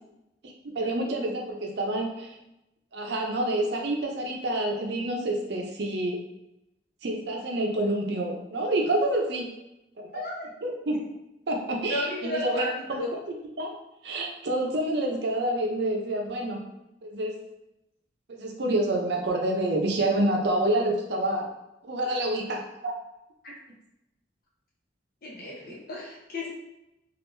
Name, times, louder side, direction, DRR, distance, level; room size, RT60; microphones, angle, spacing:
voice 1, 0.4-2.4 2.9-6.2 7.0-9.5 10.0-10.3 10.6-11.0 11.5-13.7 14.0-16.6 17.0-17.4 18.3-21.5 21.8-22.9, right 1 dB, 70° right, 1 dB, 0.6 m, -28 dB
voice 2, 10.1-10.5 11.9-13.1 23.4-23.5 25.2-26.5, left 1 dB, 55° left, -4 dB, 1.0 m, -34 dB
3.6 x 2.5 x 2.6 m, 0.90 s
head